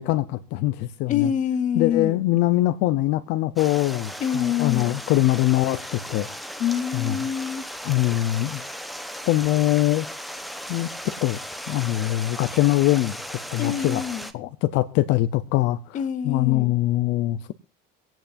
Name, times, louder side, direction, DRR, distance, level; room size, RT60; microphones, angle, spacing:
voice 1, 0.0-1.3 1.8-6.3 6.9-7.1 7.8-8.6 9.3-10.1 10.7-11.4 11.7-14.0 14.3-17.5, left 16 dB, 65° left, 0.7 m, -23 dB
voice 2, 1.1-2.2 4.2-4.9 6.6-7.6 13.6-14.3 15.9-16.7, left 9 dB, 40° left, 1.2 m, -26 dB
Stream, 3.6-14.3, equal, ahead, 0.9 m, -36 dB
26.0 x 9.1 x 2.6 m
cardioid pair, 135°, 20 cm